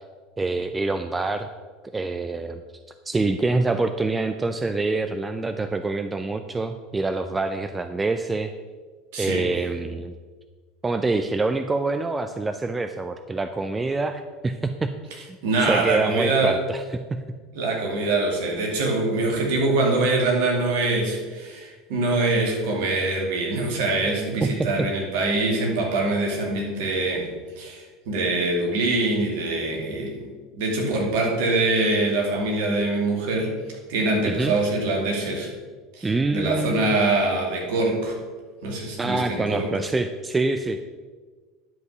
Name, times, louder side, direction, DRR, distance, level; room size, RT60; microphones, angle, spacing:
voice 1, 0.4-1.5 1.9-2.6 3.1-8.5 9.2-10.1 10.8-14.9 15.2-16.8 17.1-17.2 24.4-24.9 34.2-34.5 36.0-37.0 39.0-41.0, right 3 dB, 15° right, 9 dB, 0.5 m, -26 dB
voice 2, 9.1-9.5 15.4-16.6 17.5-27.3 27.6-33.5 33.9-35.5 36.0-38.2 38.6-39.7, right 2 dB, 60° right, 0 dB, 2.3 m, -24 dB
10.5 x 5.3 x 6.0 m, 1.4 s
figure-of-eight pair, 70°, 0 cm